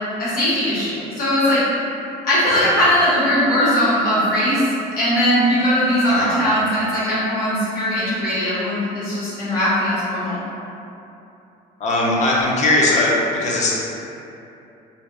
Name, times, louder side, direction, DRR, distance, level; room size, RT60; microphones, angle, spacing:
voice 1, 0.2-1.6 2.2-4.6 5.0-10.4, equal, 60° left, -11 dB, 1.2 m, -19 dB
voice 2, 6.0-6.4 11.8-13.7, left 2 dB, 45° left, -4 dB, 0.5 m, -19 dB
2.6 x 2.2 x 2.2 m, 2.8 s
cardioid pair, 110°, 17 cm